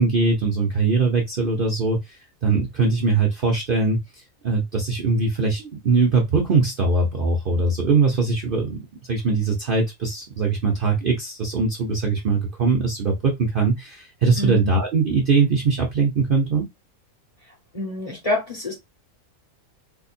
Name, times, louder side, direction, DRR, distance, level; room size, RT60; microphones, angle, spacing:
voice 1, 0.0-4.0 4.4-8.8 9.1-16.6, right 4 dB, 50° right, 0.7 m, -21 dB
voice 2, 14.4-14.7 17.7-18.7, left 2 dB, 25° left, 1.1 m, -27 dB
4.1 x 2.7 x 2.5 m
omnidirectional pair, 1.5 m